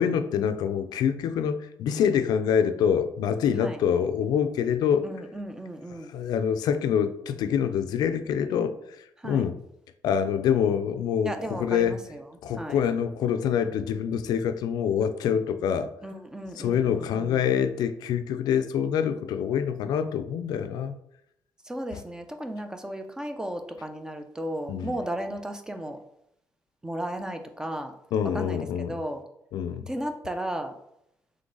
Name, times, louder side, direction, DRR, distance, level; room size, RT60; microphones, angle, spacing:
voice 1, 0.0-5.1 6.1-9.6 10.0-12.0 12.4-15.9 16.6-20.9 21.9-22.0 24.7-24.9 28.1-29.0 29.5-29.9, left 8 dB, 85° left, 10 dB, 0.4 m, -26 dB
voice 2, 5.0-6.1 9.2-9.4 11.2-12.2 12.6-12.8 16.0-17.4 21.7-26.0 26.8-27.9 28.3-29.2 29.9-30.7, right 1 dB, 10° right, 6 dB, 0.4 m, -34 dB
3.8 x 3.2 x 3.8 m, 0.77 s
cardioid pair, 140°, 7 cm